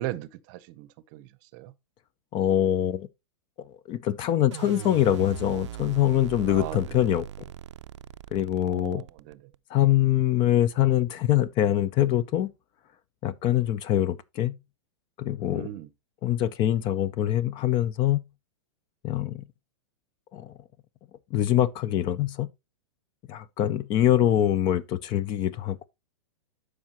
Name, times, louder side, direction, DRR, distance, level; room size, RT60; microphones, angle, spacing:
voice 1, 0.0-1.7 6.5-7.0 8.7-9.4 15.5-15.9, right 15 dB, 45° right, 0.7 m, -38 dB
voice 2, 2.3-3.1 3.9-7.3 8.3-9.0 9.7-12.5 13.2-14.5 15.2-15.7 16.2-18.2 19.0-19.4 20.3-20.5 21.3-22.5 23.3-25.9, left 12 dB, 30° left, 0.5 m, -24 dB
sound 1, 4.5-9.6, right 11 dB, 80° right, 0.4 m, -40 dB
12.0 x 4.9 x 2.9 m
hypercardioid pair, 135°, 15 cm